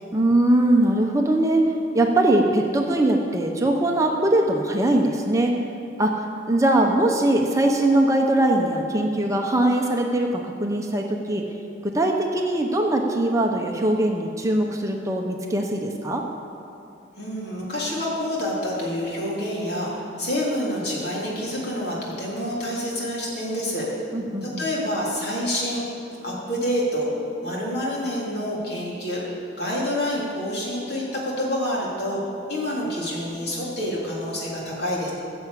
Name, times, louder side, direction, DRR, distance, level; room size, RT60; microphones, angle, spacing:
voice 1, 0.1-5.5 6.0-11.4 11.8-16.2 24.1-24.6, right 1 dB, 15° right, 1 dB, 0.8 m, -21 dB
voice 2, 17.2-23.9 24.4-25.9 26.2-27.1 27.4-29.2 29.6-32.2 32.5-35.1, equal, 55° left, -5 dB, 3.5 m, -27 dB
14.5 x 7.0 x 8.2 m, 2.7 s
head